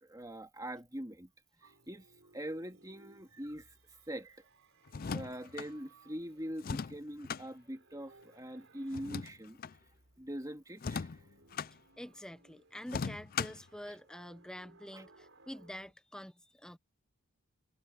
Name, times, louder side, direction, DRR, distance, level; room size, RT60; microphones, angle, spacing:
voice 1, 0.0-1.3 1.6-2.1 2.3-3.7 4.1-4.4 5.0-9.6 10.2-11.1 14.9-15.0, equal, 15° right, 2.2 m, -43 dB
sound 1, 1.6-15.9, right 3 dB, 55° right, 5.7 m, -64 dB
sound 2, 4.9-5.7 6.6-7.4 8.9-9.8 10.8-11.7 12.9-13.7, left 6 dB, 40° left, 0.4 m, -38 dB
voice 2, 12.0-16.8, equal, 5° left, 0.7 m, -47 dB
head